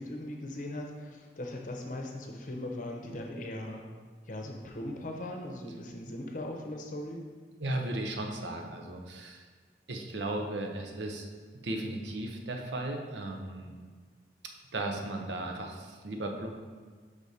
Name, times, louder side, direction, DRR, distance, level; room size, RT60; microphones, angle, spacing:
voice 1, 0.0-3.8 4.3-7.2, left 1 dB, 45° left, 2 dB, 0.7 m, -39 dB
voice 2, 7.6-9.4 9.9-11.3 11.6-13.7 14.7-16.5, right 1 dB, 85° right, 3 dB, 0.7 m, -36 dB
5.2 x 4.9 x 4.1 m, 1.5 s
head